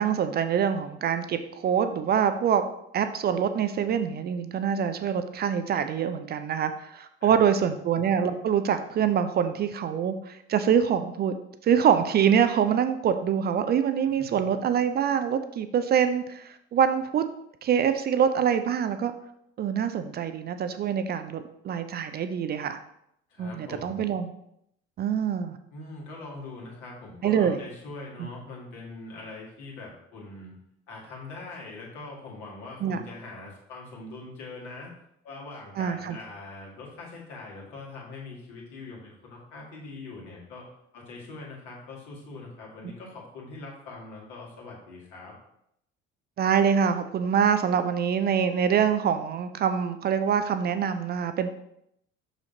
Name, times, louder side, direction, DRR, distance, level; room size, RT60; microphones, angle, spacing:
voice 1, 0.0-2.6 2.9-11.3 11.6-17.2 17.6-19.1 19.6-22.8 23.4-24.3 25.0-25.6 27.2-27.6 28.2-28.3 32.8-33.0 35.8-36.2 46.4-51.5, right 8 dB, 25° right, 10 dB, 0.4 m, -25 dB
voice 2, 7.2-7.6 23.3-24.0 25.7-30.5 30.9-34.9 35.2-40.7 40.9-45.3, left 3 dB, 60° left, -3 dB, 2.2 m, -42 dB
6.3 x 5.9 x 2.8 m, 0.75 s
figure-of-eight pair, 55°, 38 cm